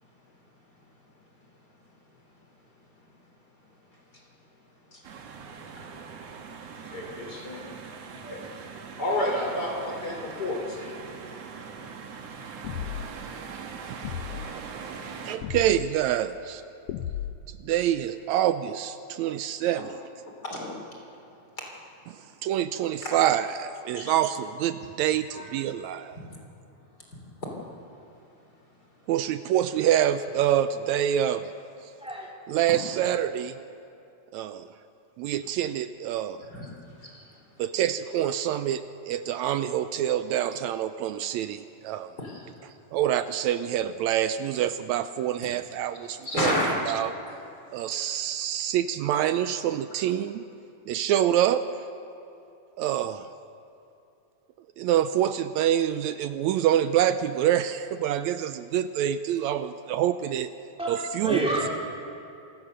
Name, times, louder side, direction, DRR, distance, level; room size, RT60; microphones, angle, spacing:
voice 1, 0.0-11.0 15.4-15.5 19.7-19.8 20.2-21.2 21.4-21.7 22.1-22.3 23.0-23.2 23.9-24.1 25.3-25.4 26.2-26.4 26.7-29.1 32.1-32.2 35.4-35.5 36.5-37.6 42.2-42.7 46.2-46.8 48.0-48.1, left 1 dB, 35° left, -1 dB, 3.9 m, -35 dB
sound 1, 5.0-15.4, right 5 dB, 60° right, 2.5 m, -41 dB
sound 2, 12.6-13.2 14.0-14.5 15.4-15.9 16.9-17.6, left 10 dB, 75° left, 1.4 m, -34 dB
voice 2, 15.3-16.6 17.5-19.9 22.4-26.2 29.1-31.5 32.5-33.6 34.3-34.7 35.2-36.4 37.6-42.1 42.9-46.5 46.9-47.1 47.7-50.4 50.9-51.6 52.8-53.3 54.8-60.5 60.9-61.4, right 11 dB, 80° right, 11 dB, 1.9 m, -26 dB
voice 3, 32.0-32.3 60.8-61.7, right 1 dB, ahead, -3 dB, 3.6 m, -29 dB
27.5 x 16.5 x 6.7 m, 2.7 s
omnidirectional pair, 3.3 m